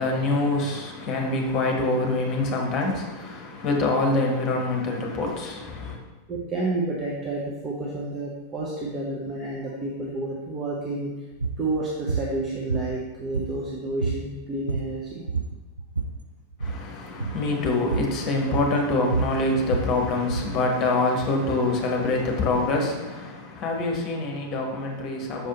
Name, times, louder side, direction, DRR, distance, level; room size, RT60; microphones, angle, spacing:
voice 1, 0.0-6.0 16.6-25.5, left 2 dB, 35° left, 1.2 m, -25 dB
voice 2, 6.3-11.1 11.6-15.3, right 2 dB, 25° right, 0.9 m, -30 dB
sound 1, 11.3-11.6 12.1-12.3 12.7-13.7 14.0-14.3 14.5-15.0 15.3-16.2 16.5-16.8 17.2-17.4 17.9-18.2 18.5-20.6, right 4 dB, 80° right, 0.4 m, -28 dB
6.7 x 4.7 x 3.0 m
figure-of-eight pair, 90°, 0 cm